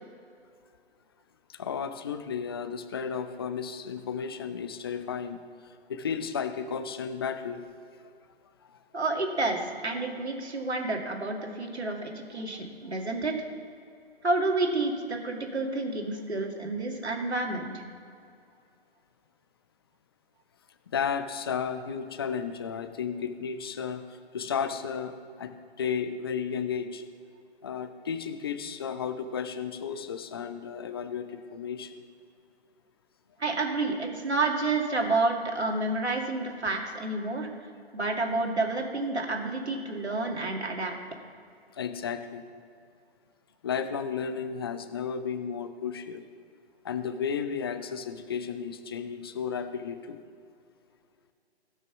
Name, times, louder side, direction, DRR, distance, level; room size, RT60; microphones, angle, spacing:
voice 1, 1.5-7.6 8.0-8.1 8.7-8.8 20.9-27.0 27.6-32.0 41.7-42.4 43.6-46.2 46.8-50.2, left 7 dB, 25° left, 10 dB, 0.5 m, -33 dB
voice 2, 8.9-13.3 14.2-17.8 33.4-37.5 37.9-40.9, right 2 dB, 80° right, 2 dB, 2.3 m, -29 dB
16.5 x 6.3 x 6.0 m, 2.4 s
figure-of-eight pair, 145°, 32 cm